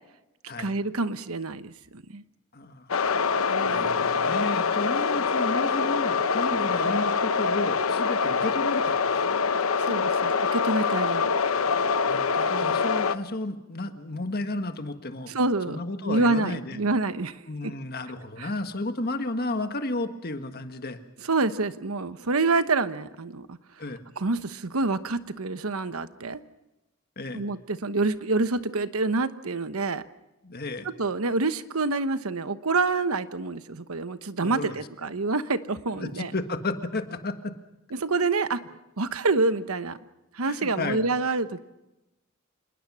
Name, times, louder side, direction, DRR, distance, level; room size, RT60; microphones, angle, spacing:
voice 1, 0.6-2.2 3.5-4.1 9.8-11.3 12.5-12.8 15.3-15.8 16.0-17.4 18.4-18.5 21.3-23.6 24.2-26.4 27.3-30.0 30.8-36.3 37.9-38.6 39.0-40.0 40.3-41.6, right 3 dB, 90° right, 12 dB, 1.1 m, -27 dB
voice 2, 2.5-2.9 3.6-8.9 12.1-15.3 15.7-16.8 17.4-21.0 23.8-24.0 27.2-27.5 30.4-30.9 34.4-35.1 35.9-37.5 40.4-41.0, left 2 dB, 45° left, 8 dB, 1.7 m, -33 dB
sound 1, 2.9-13.2, left 5 dB, 75° left, 0.9 m, -25 dB
27.0 x 20.5 x 6.2 m, 0.96 s
head